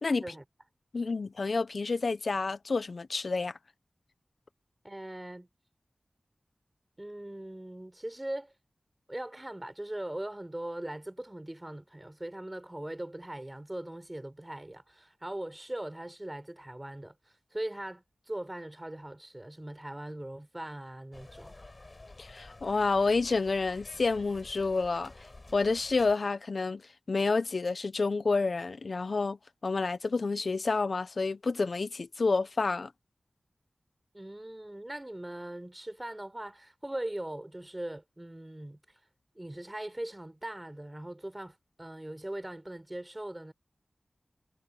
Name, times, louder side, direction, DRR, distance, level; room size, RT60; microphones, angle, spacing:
voice 1, 0.9-3.5 22.2-25.1 25.5-26.8 27.1-29.4 29.6-32.9, left 3 dB, 70° left, 1.1 m, -29 dB
voice 2, 4.8-5.5 7.0-8.5 9.1-21.5 34.1-38.8 39.3-43.5, right 1 dB, 20° right, 4.7 m, -40 dB
sound 1, 21.1-26.1, left 2 dB, 45° left, 7.8 m, -51 dB
cardioid pair, 40°, 0 cm